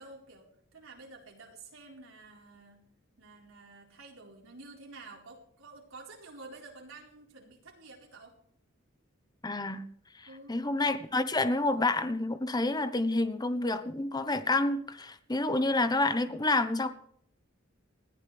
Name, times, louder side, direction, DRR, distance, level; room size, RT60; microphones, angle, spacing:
voice 1, 0.0-2.8 3.2-8.4 10.3-10.5, right 3 dB, 75° right, 4.5 m, -50 dB
voice 2, 9.4-9.9 10.2-16.9, left 2 dB, 20° left, 1.0 m, -29 dB
20.0 x 14.5 x 3.4 m
head